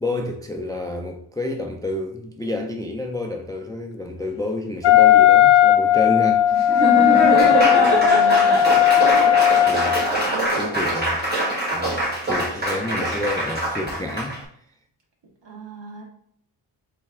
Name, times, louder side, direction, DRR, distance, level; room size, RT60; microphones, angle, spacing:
voice 1, 0.0-6.6 9.7-10.0 10.5-11.2 11.7-12.0 12.3-14.4, left 2 dB, 10° left, 0.4 m, -29 dB
Wind instrument woodwind instrument, 4.8-10.1, left 12 dB, 60° left, 0.6 m, -16 dB
Laughter / Applause, 6.5-14.4, right 1 dB, 20° right, 1.7 m, -23 dB
voice 2, 8.0-8.7 9.0-9.5 10.3-10.6 15.4-16.0, right 2 dB, 60° right, 1.7 m, -33 dB
3.9 x 3.3 x 3.5 m
wide cardioid pair, 95°, 48 cm